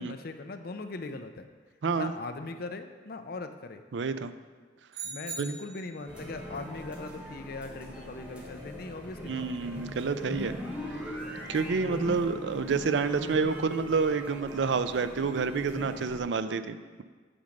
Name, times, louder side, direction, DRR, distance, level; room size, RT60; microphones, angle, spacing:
voice 1, 0.0-1.5 1.9-3.8 5.0-9.5, left 3 dB, 55° left, 7 dB, 0.6 m, -40 dB
voice 2, 3.9-4.3 5.4-5.6 7.9-8.0 9.2-10.6 11.5-17.0, right 4 dB, 80° right, 11 dB, 0.5 m, -29 dB
sound 1, 4.9-6.0, right 4 dB, 55° right, 2.8 m, -40 dB
sound 2, 6.1-16.2, equal, 5° right, 1.7 m, -40 dB
8.7 x 5.2 x 6.5 m, 1.5 s
head